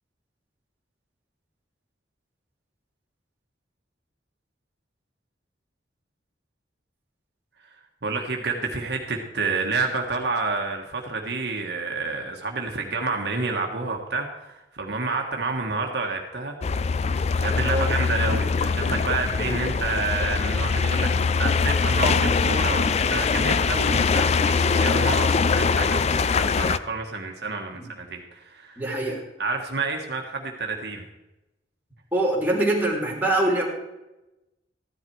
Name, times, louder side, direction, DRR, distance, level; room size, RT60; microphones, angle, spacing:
voice 1, 8.0-16.5 17.1-28.8 29.4-31.0, right 3 dB, 65° right, 2 dB, 1.4 m, -29 dB
sound 1, 16.6-26.8, left 5 dB, 40° left, 0.4 m, -22 dB
voice 2, 28.8-29.2 32.1-33.7, right 1 dB, 10° right, -3 dB, 3.1 m, -24 dB
14.0 x 10.5 x 4.7 m, 0.99 s
head